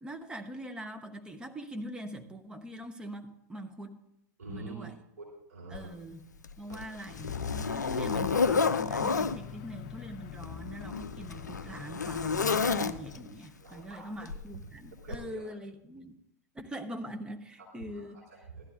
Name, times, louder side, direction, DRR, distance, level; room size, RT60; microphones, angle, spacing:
voice 1, 0.0-4.0 4.5-5.0 5.7-6.2 6.6-16.1 16.5-18.3, right 1 dB, 10° right, 6 dB, 0.9 m, -42 dB
voice 2, 4.4-4.9 5.2-5.9 6.7-7.0 9.4-9.5 13.6-14.3 14.6-14.7 15.0-15.5 17.9-18.6, right 3 dB, 70° right, -4 dB, 3.5 m, -46 dB
Zipper (clothing), 5.7-5.9 6.4-9.4 10.3-13.3 14.3-14.5 15.1-15.2, left 5 dB, 80° left, 0.4 m, -30 dB
sound 1, 7.1-13.0, left 9 dB, 45° left, 0.7 m, -45 dB
16.0 x 12.0 x 2.5 m, 0.80 s
figure-of-eight pair, 95°, 9 cm